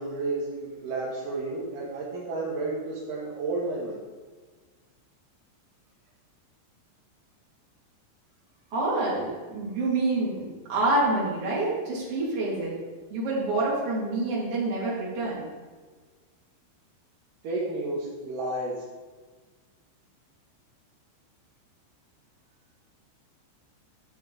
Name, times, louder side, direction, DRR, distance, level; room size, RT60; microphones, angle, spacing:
voice 1, 0.0-4.0 17.4-18.8, right 2 dB, 75° right, -5 dB, 1.9 m, -31 dB
voice 2, 8.7-12.7 13.1-15.4, right 2 dB, 40° right, -6 dB, 2.6 m, -27 dB
12.0 x 7.0 x 3.9 m, 1.4 s
omnidirectional pair, 5.6 m